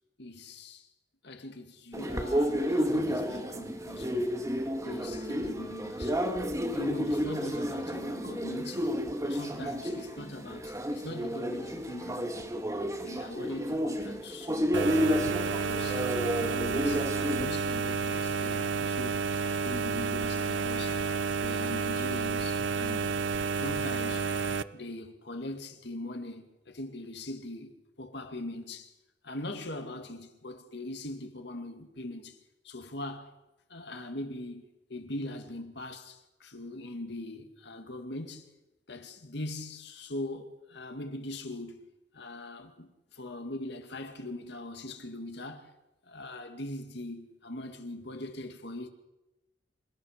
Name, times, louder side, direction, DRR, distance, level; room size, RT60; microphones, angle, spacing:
voice 1, 0.2-0.9 1.2-4.3 4.8-6.2 6.7-8.9 9.2-12.5 13.0-16.0 16.4-19.3 19.6-21.0 21.4-23.2 23.5-24.3 24.7-28.9 29.2-32.4 32.6-33.3 33.7-38.5 38.9-41.9 42.1-45.7 46.1-48.9, left 1 dB, 65° left, 2.2 m, -41 dB
sound 1, 1.9-17.5, equal, 20° right, 1.9 m, -31 dB
sound 2, 14.7-24.6, right 5 dB, 80° right, 0.7 m, -30 dB
27.0 x 15.0 x 6.6 m
head